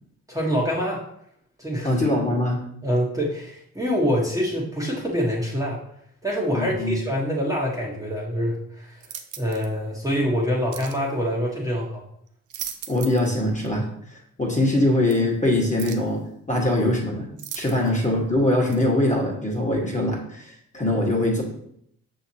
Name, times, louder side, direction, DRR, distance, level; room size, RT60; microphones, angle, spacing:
voice 1, 0.3-1.0 1.6-2.0 2.8-5.8 6.2-9.0 9.4-12.0 14.4-14.6 17.7-18.0, equal, 10° right, -5 dB, 1.2 m, -25 dB
voice 2, 1.8-2.6 6.5-6.9 12.9-16.2 16.5-17.3 17.5-21.4, left 1 dB, 20° left, -2 dB, 1.5 m, -22 dB
sound 1, 9.0-9.7 10.7-11.0 12.3-13.3 13.7-13.8 15.1-15.2 15.8-16.1 17.4-18.1 18.7-18.9, right 9 dB, 50° right, 0.6 m, -38 dB
6.2 x 3.0 x 2.8 m, 0.70 s
hypercardioid pair, 45°, 39 cm